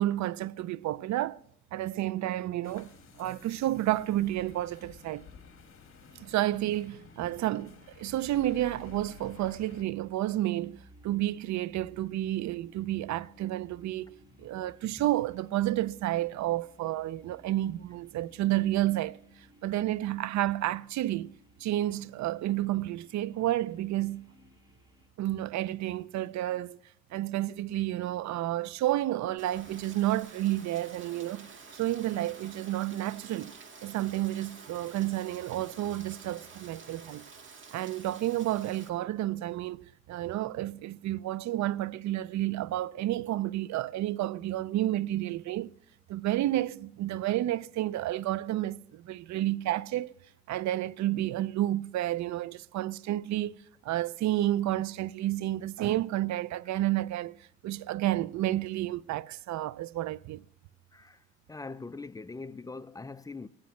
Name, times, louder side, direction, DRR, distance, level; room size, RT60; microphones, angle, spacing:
voice 1, 0.0-1.4 1.7-2.9 3.2-5.3 6.2-19.2 19.6-21.3 21.6-24.2 25.2-26.8 27.1-33.5 33.8-37.2 37.7-45.7 46.1-50.1 50.5-53.6 53.8-57.4 57.6-60.4, right 14 dB, 70° right, 0.5 m, -30 dB
sound 1, 2.6-9.8, left 6 dB, 45° left, 1.7 m, -52 dB
sound 2, 9.7-25.1, equal, 15° right, 2.7 m, -60 dB
Rain, 29.4-38.9, right 4 dB, 40° right, 1.8 m, -50 dB
voice 2, 60.9-63.5, left 3 dB, 10° left, 0.4 m, -42 dB
16.0 x 11.0 x 3.1 m
cardioid pair, 90°, 30 cm